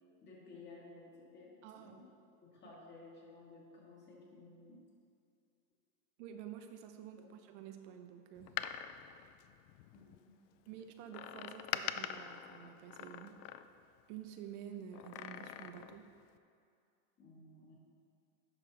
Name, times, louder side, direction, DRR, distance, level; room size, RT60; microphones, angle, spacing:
voice 1, 0.2-2.1 2.4-4.8 7.2-7.3 9.9-10.3 17.2-17.7, left 3 dB, 25° left, -4 dB, 1.9 m, -56 dB
voice 2, 1.6-2.0 2.6-2.7 6.2-8.6 10.7-13.4 14.1-16.1, right 9 dB, 65° right, 6 dB, 0.8 m, -50 dB
Door, 8.4-10.2 11.1-14.0 14.9-16.1 16.4-16.5, left 11 dB, 70° left, 0.5 m, -44 dB
11.0 x 5.5 x 4.1 m, 2.5 s
supercardioid pair, 145°, 39 cm